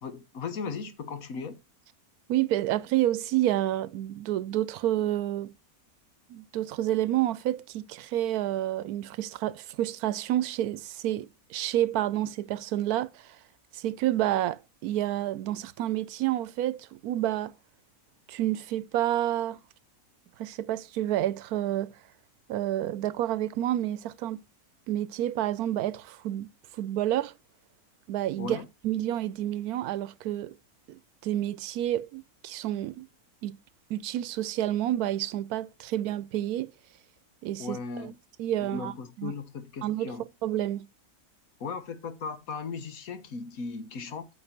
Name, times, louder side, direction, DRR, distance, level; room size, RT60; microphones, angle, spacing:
voice 1, 0.0-1.6 28.4-28.7 37.6-38.2 38.6-40.3 41.6-44.3, left 5 dB, 70° left, 1.6 m, -37 dB
voice 2, 2.3-5.5 6.3-13.3 13.7-17.5 18.3-19.6 20.4-21.9 22.5-24.4 24.9-26.5 26.8-27.3 28.1-28.6 28.8-30.5 30.9-33.1 33.4-33.6 33.9-36.7 37.4-38.1 38.4-38.9 39.2-39.3 39.8-40.1 40.4-40.9, right 13 dB, 90° right, 1.1 m, -29 dB
8.7 x 6.3 x 4.3 m
omnidirectional pair, 1.5 m